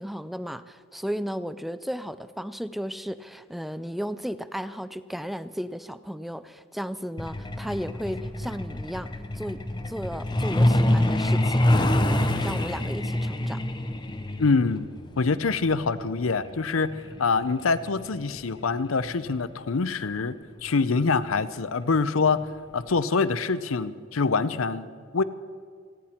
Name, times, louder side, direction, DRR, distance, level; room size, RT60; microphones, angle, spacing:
voice 1, 0.0-9.1 9.3-11.7 12.1-13.6, equal, ahead, 13 dB, 0.4 m, -34 dB
Truck, 7.2-19.5 20.7-20.9 21.3-21.4 21.8-22.1 22.4-22.5 23.0-23.1, left 1 dB, 20° left, 0.8 m, -26 dB
voice 2, 14.4-14.9 15.2-20.3 20.6-24.9 25.1-25.2, left 4 dB, 85° left, 14 dB, 0.7 m, -25 dB
28.5 x 10.5 x 4.4 m, 2.1 s
head